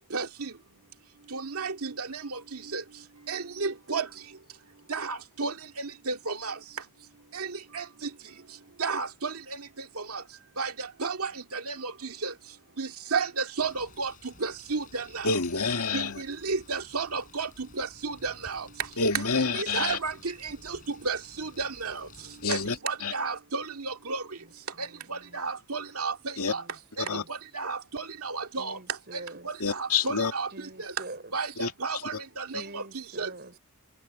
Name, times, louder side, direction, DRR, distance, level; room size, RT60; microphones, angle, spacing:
voice 1, 0.1-0.5 1.3-2.4 2.7-2.8 3.3-4.1 4.9-6.5 7.3-7.5 7.7-7.8 8.8-9.3 10.1-10.2 10.6-11.9 12.2-12.3 12.8-15.3 15.9-18.7 19.1-19.2 19.5-20.1 20.4-20.8 21.0-22.1 22.5-24.2 24.8-26.6 27.0-28.8 29.1-29.2 29.5-30.5 30.8-30.9 31.3-31.5 31.8-33.3, right 4 dB, 80° right, 2.2 m, -32 dB
Bird, 13.6-22.8, left 3 dB, 35° left, 6.7 m, -53 dB
voice 2, 15.2-16.2 19.0-20.0 22.4-22.7 23.0-23.1 26.4-26.5 27.1-27.2 29.6-30.3 31.6-31.7, left 4 dB, 90° left, 2.5 m, -27 dB
voice 3, 24.4-25.4 26.5-27.3 28.5-29.5 30.5-31.7 32.5-33.6, right 2 dB, 45° right, 4.5 m, -46 dB
head